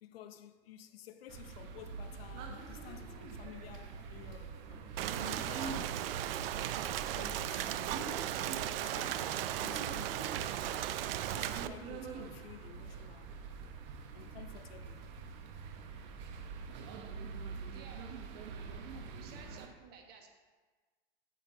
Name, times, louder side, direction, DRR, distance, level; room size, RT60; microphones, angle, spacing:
voice 1, 0.0-6.1 6.8-7.8 8.6-10.9 11.3-13.3 14.1-15.1 18.9-19.2, left 10 dB, 85° left, 0.7 m, -52 dB
sound 1, 1.3-19.7, right 5 dB, 50° right, 1.0 m, -45 dB
Rain, 5.0-11.7, right 12 dB, 75° right, 0.5 m, -36 dB
voice 2, 17.7-18.2 18.8-18.9 19.1-20.3, right 6 dB, 35° right, 1.3 m, -55 dB
9.2 x 8.1 x 2.8 m
supercardioid pair, 140°, 29 cm